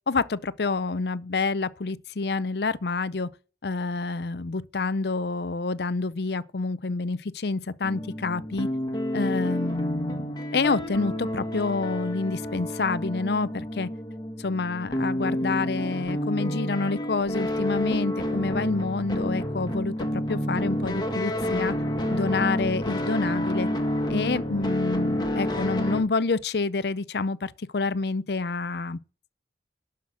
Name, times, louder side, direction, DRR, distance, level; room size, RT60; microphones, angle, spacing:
voice 1, 0.1-3.3 3.6-8.7 9.1-13.9 14.4-21.7 22.1-23.7 24.1-29.0, left 3 dB, 65° left, 0.6 m, -28 dB
sound 1, 7.8-26.0, left 1 dB, 25° left, 1.5 m, -29 dB
11.5 x 5.8 x 6.1 m
head